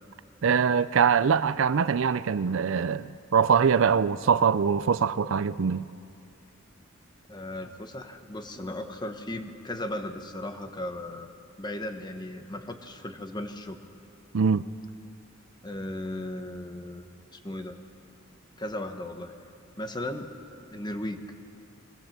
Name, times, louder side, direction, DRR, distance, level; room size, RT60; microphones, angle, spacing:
voice 1, 0.4-5.9 14.3-14.6, right 6 dB, 65° right, 0.5 m, -23 dB
voice 2, 7.3-11.3 11.6-13.8 15.6-17.1 17.3-17.7 18.6-19.3 19.8-21.3, left 1 dB, 20° left, 1.2 m, -36 dB
21.5 x 19.0 x 7.3 m
head